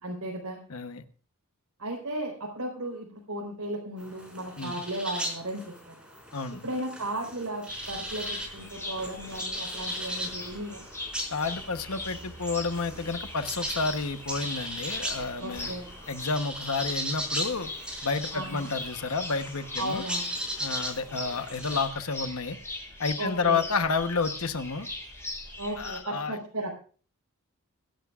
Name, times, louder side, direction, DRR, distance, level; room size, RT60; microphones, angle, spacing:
voice 1, 0.0-0.6 1.8-5.9 6.6-10.9 15.4-15.9 18.3-18.7 19.8-20.3 23.2-23.6 25.6-26.8, right 1 dB, 85° right, -3 dB, 4.2 m, -35 dB
voice 2, 0.7-1.0 4.6-4.8 6.3-6.7 11.3-15.7 16.1-17.7 18.0-20.1 20.6-22.6 23.0-24.9 25.8-26.4, left 4 dB, 65° left, 9 dB, 1.0 m, -30 dB
sound 1, 4.0-21.9, equal, 5° right, 5.0 m, -38 dB
sound 2, 7.7-26.0, left 2 dB, 10° left, 7.8 m, -41 dB
26.0 x 11.5 x 2.4 m, 0.40 s
head